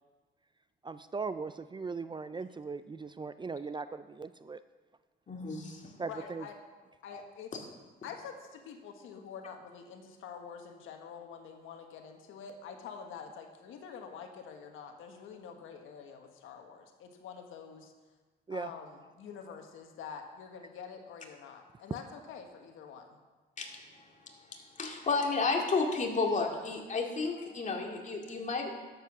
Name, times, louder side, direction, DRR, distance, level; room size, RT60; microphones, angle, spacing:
voice 1, 0.8-4.6 6.0-6.5 18.5-18.7, right 4 dB, 25° right, 13 dB, 0.4 m, -39 dB
voice 2, 5.3-5.9 7.1-7.2 23.6-28.7, left 4 dB, 40° left, 1 dB, 2.3 m, -32 dB
voice 3, 6.0-6.5 7.0-7.5 8.0-17.9 18.5-23.2, left 6 dB, 85° left, 4 dB, 1.5 m, -46 dB
12.0 x 8.2 x 6.0 m, 1.3 s
cardioid pair, 90°, 20 cm